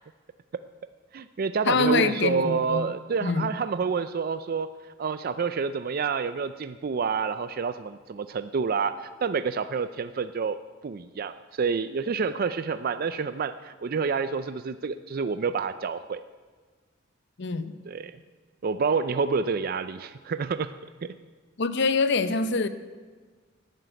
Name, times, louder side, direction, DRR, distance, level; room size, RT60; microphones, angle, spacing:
voice 1, 1.1-4.7 5.0-10.6 10.8-16.2 17.9-18.2 18.6-20.7, right 5 dB, 45° right, 12 dB, 0.4 m, -28 dB
voice 2, 1.7-2.9 3.2-3.5 17.4-17.7 21.6-22.7, left 3 dB, 60° left, 12 dB, 0.8 m, -24 dB
12.0 x 9.2 x 9.1 m, 1.4 s
head